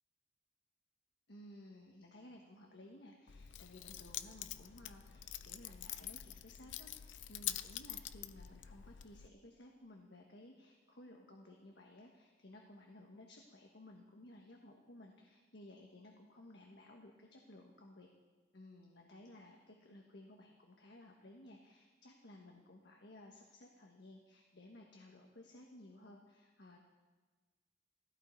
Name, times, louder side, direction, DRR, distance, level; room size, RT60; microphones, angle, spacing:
voice 1, 1.3-18.1 18.5-26.8, left 1 dB, 70° left, 1 dB, 1.4 m, -57 dB
Keys jangling, 3.3-9.3, left 12 dB, 90° left, 0.5 m, -46 dB
16.0 x 15.5 x 4.5 m, 1.4 s
head